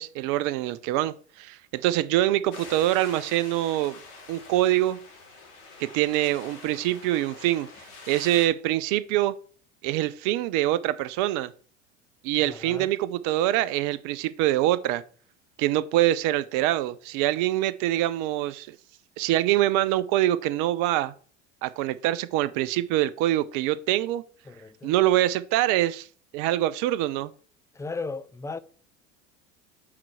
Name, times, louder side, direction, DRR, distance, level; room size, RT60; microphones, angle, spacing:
voice 1, 0.0-4.0 4.3-5.0 5.8-7.7 8.1-9.4 9.8-11.5 12.2-15.0 15.6-18.8 19.2-21.1 21.6-24.2 24.8-26.1 26.3-27.3, right 14 dB, 55° right, 0.7 m, -24 dB
sound 1, 2.5-8.5, left 4 dB, 65° left, 3.0 m, -45 dB
voice 2, 12.4-12.9 24.5-24.9 27.7-28.6, left 3 dB, 10° left, 0.4 m, -36 dB
6.0 x 4.4 x 6.2 m
hypercardioid pair, 80°, 37 cm